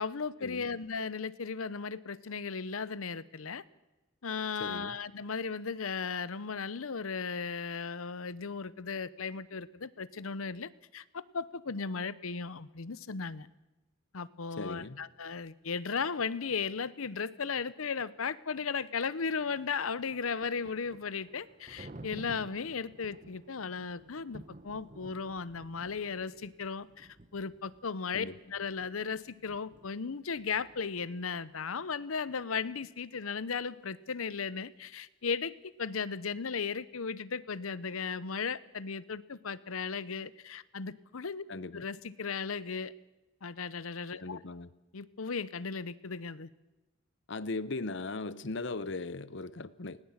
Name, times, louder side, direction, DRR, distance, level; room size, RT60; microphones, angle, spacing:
voice 1, 0.0-3.6 4.2-13.5 14.1-28.3 28.5-41.4 41.7-42.9 43.4-44.4 44.9-46.5, left 5 dB, 90° left, 0.8 m, -36 dB
voice 2, 4.6-5.0 14.6-15.0 28.1-28.4 41.5-41.8 44.2-44.7 47.3-50.0, left 3 dB, 60° left, 0.8 m, -38 dB
Thunder, 19.6-31.4, right 1 dB, 35° right, 1.0 m, -53 dB
19.5 x 18.0 x 7.4 m
head